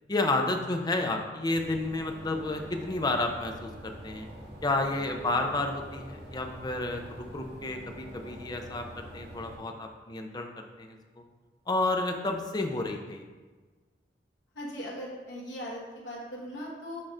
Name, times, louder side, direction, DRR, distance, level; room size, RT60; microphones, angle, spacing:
voice 1, 0.1-4.3 4.6-11.0 11.7-13.2, left 2 dB, 25° left, 4 dB, 0.6 m, -31 dB
sound 1, 1.6-9.6, right 1 dB, 65° right, 1.9 m, -45 dB
voice 2, 14.5-17.0, equal, 85° left, -4 dB, 1.3 m, -39 dB
6.4 x 4.6 x 3.7 m, 1.4 s
head